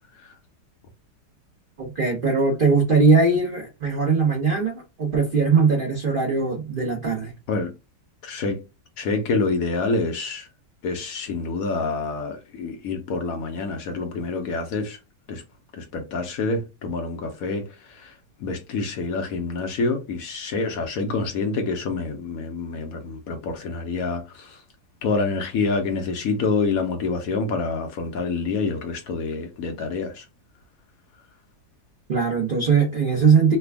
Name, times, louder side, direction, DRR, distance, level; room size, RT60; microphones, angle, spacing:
voice 1, 1.8-7.3 32.1-33.6, right 4 dB, 45° right, 0.7 m, -20 dB
voice 2, 8.2-8.6 9.0-10.5 10.8-15.0 15.3-15.4 15.7-24.6 25.0-30.3, left 3 dB, 65° left, 1.0 m, -27 dB
3.3 x 2.2 x 3.3 m
omnidirectional pair, 1.9 m